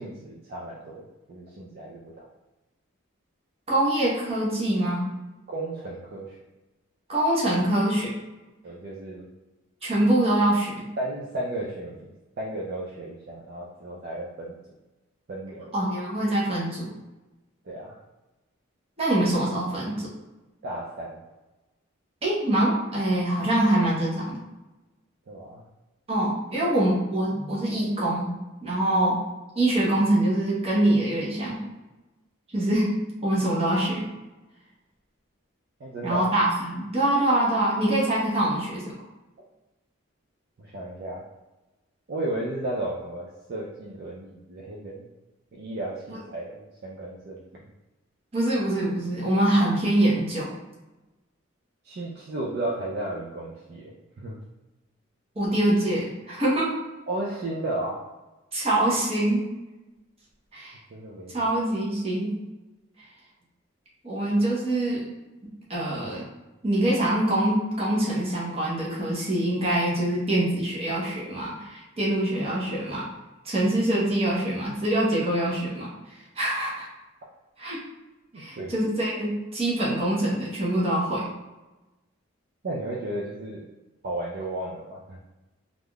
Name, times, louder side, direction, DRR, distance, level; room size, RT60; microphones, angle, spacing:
voice 1, 0.0-2.3 5.5-6.4 8.6-9.3 11.0-12.1 12.4-14.5 15.3-15.7 17.6-18.0 20.6-21.2 25.3-25.6 26.6-26.7 35.8-36.2 40.6-41.2 42.1-45.0 45.5-47.4 51.8-54.4 57.1-58.0 60.9-61.5 78.3-78.7 82.6-83.6 84.0-85.2, right 1 dB, 50° right, -4 dB, 0.4 m, -34 dB
voice 2, 3.7-5.0 7.1-8.1 9.8-10.9 15.7-16.9 19.0-20.1 22.2-24.4 26.1-28.3 28.6-29.2 29.5-31.6 32.5-34.1 36.0-38.9 46.1-46.2 48.3-50.5 55.4-56.8 58.5-59.5 60.5-60.8 61.3-62.4 64.0-65.0 65.7-66.2 66.6-73.1 73.4-76.9 77.6-77.8 78.3-81.3, right 1 dB, 30° right, -6 dB, 0.8 m, -24 dB
3.4 x 2.5 x 2.3 m, 1.1 s
head